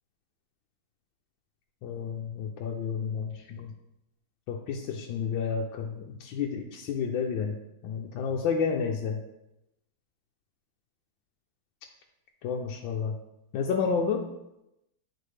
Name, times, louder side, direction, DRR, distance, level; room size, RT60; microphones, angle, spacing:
voice 1, 1.8-3.7 4.5-7.6 7.8-9.2 12.4-13.2 13.5-14.3, left 6 dB, 75° left, 1 dB, 1.3 m, -30 dB
9.5 x 4.4 x 3.3 m, 0.88 s
omnidirectional pair, 2.2 m